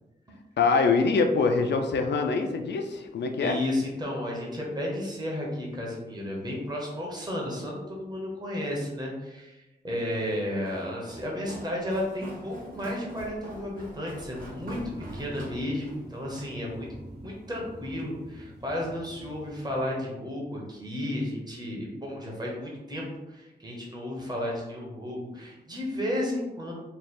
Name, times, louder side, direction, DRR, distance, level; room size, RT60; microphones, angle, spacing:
voice 1, 0.6-3.6, left 4 dB, 90° left, 5 dB, 0.4 m, -24 dB
voice 2, 3.4-14.8 15.1-16.9 17.2-26.7, left 1 dB, 25° right, -3 dB, 1.0 m, -33 dB
Walk footsteps, 10.1-16.6, right 1 dB, 55° right, 1.1 m, -45 dB
sound 1, 14.4-19.8, equal, 80° right, 1.4 m, -45 dB
3.3 x 2.4 x 4.3 m, 1.0 s
wide cardioid pair, 145°, 17 cm